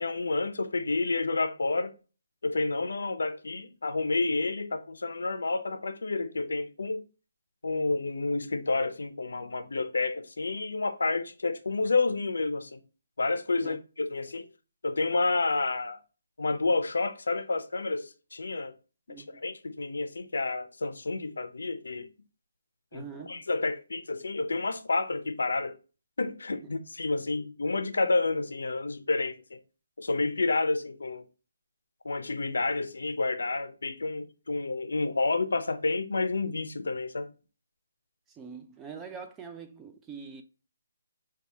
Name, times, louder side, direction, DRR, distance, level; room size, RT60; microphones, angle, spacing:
voice 1, 0.0-1.9 2.4-7.0 7.6-12.8 13.2-14.5 14.8-16.0 16.4-18.7 19.1-22.1 22.9-25.8 26.2-29.6 30.0-31.2 32.0-37.3, left 3 dB, 80° left, 0.6 m, -30 dB
voice 2, 19.1-19.4 22.9-23.5 38.3-40.4, right 6 dB, 10° right, 0.3 m, -44 dB
4.6 x 2.3 x 2.7 m
hypercardioid pair, 165°, 0 cm